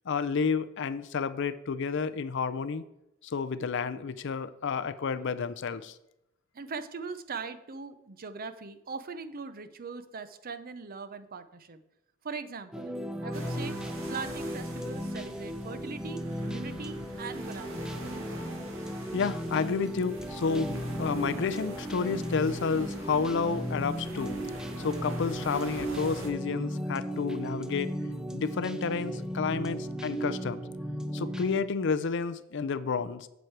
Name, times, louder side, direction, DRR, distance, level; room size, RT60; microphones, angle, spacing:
voice 1, 0.1-2.8 3.2-6.0 19.1-27.9 28.3-30.6 31.1-33.3, left 5 dB, 60° left, 13 dB, 0.5 m, -30 dB
voice 2, 6.5-11.8 12.2-13.8 14.1-18.1, right 4 dB, 45° right, 11 dB, 0.6 m, -41 dB
sound 1, 12.7-31.6, equal, 5° right, 0.5 m, -36 dB
sound 2, 13.3-26.3, right 2 dB, 75° right, 1.7 m, -45 dB
8.1 x 7.7 x 4.6 m, 0.88 s
head